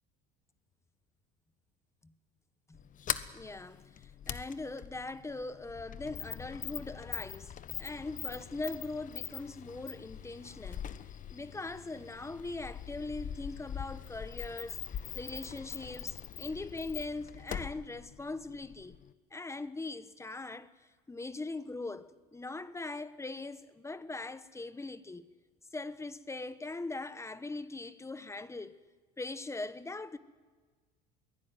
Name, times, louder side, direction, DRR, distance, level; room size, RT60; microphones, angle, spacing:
Sliding door, 2.7-19.1, left 9 dB, 40° left, 1.2 m, -42 dB
voice 1, 3.3-7.5 7.8-10.9 11.3-19.0 19.3-25.3 25.7-28.8 29.2-30.2, left 3 dB, 15° left, 1.2 m, -41 dB
22.5 x 17.0 x 9.5 m
hypercardioid pair, 85°, 20 cm